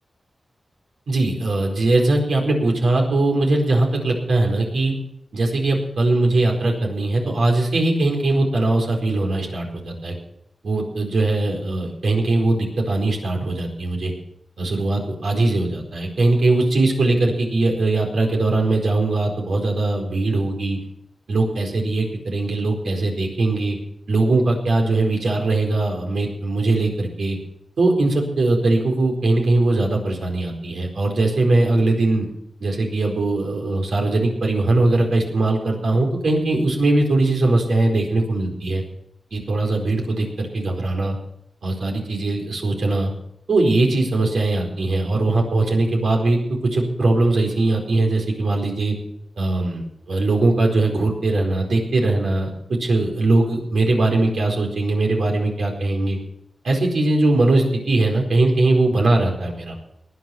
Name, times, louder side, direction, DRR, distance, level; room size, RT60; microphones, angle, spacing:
voice 1, 1.1-4.9 5.3-10.1 10.6-14.1 14.6-20.8 21.3-23.8 24.1-27.4 27.8-32.2 32.6-38.8 39.3-41.2 41.6-43.1 43.5-49.0 49.4-56.2 56.6-59.8, right 2 dB, 85° right, 1 dB, 4.4 m, -20 dB
19.0 x 10.5 x 5.9 m, 0.75 s
wide cardioid pair, 110°, 0 cm